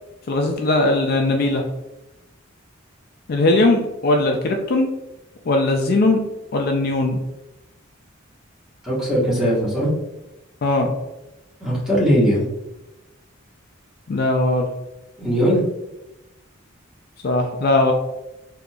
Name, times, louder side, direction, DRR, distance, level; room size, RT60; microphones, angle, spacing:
voice 1, 0.3-1.6 3.3-4.9 5.5-6.2 6.5-7.2 10.6-10.9 14.1-14.7 17.2-17.9, left 2 dB, 50° left, 3 dB, 0.4 m, -19 dB
voice 2, 8.8-9.9 11.6-12.5 15.2-15.6, equal, 5° right, -7 dB, 1.2 m, -19 dB
3.8 x 2.8 x 2.3 m, 0.96 s
head